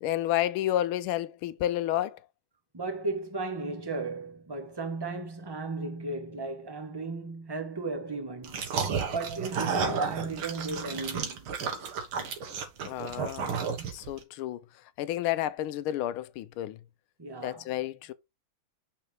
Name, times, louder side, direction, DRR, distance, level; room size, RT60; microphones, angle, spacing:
voice 1, 0.0-2.2 12.8-13.6 13.9-14.6 15.0-16.8 17.4-18.1, left 13 dB, 90° left, 1.5 m, -30 dB
voice 2, 2.7-8.6 9.1-11.5 17.2-17.7, right 3 dB, 20° right, 0.7 m, -35 dB
sound 1, 8.4-14.2, right 6 dB, 85° right, 2.1 m, -32 dB
7.4 x 6.0 x 3.3 m
omnidirectional pair, 2.3 m